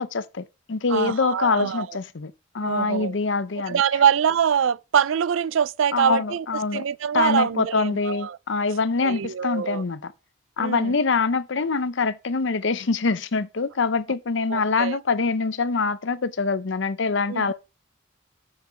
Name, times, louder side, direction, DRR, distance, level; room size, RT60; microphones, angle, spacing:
voice 1, 0.0-3.8 5.9-6.8 7.1-10.1 10.6-17.5, left 4 dB, 65° left, 0.7 m, -24 dB
voice 2, 0.9-1.9 2.6-3.1 3.7-6.5 6.7-8.4 9.0-9.8 10.6-10.9 14.5-15.0 17.3-17.5, right 8 dB, 80° right, 0.4 m, -24 dB
7.5 x 6.4 x 5.7 m
head